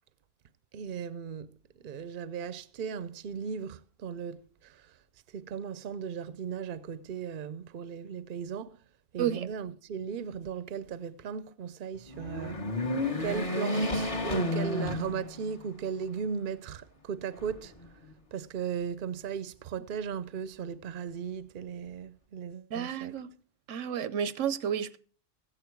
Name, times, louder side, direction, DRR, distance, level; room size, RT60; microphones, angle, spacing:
voice 1, 0.7-1.5 1.8-4.8 5.3-8.8 9.1-12.6 13.2-17.7 18.3-23.1, right 7 dB, 50° right, 0.7 m, -37 dB
sound 1, 12.1-15.7 16.2-16.3 17.3-18.1, left 1 dB, 30° left, 1.2 m, -32 dB
voice 2, 22.7-23.3 23.7-25.0, right 9 dB, 85° right, 1.0 m, -31 dB
14.0 x 8.9 x 4.6 m
omnidirectional pair, 1.3 m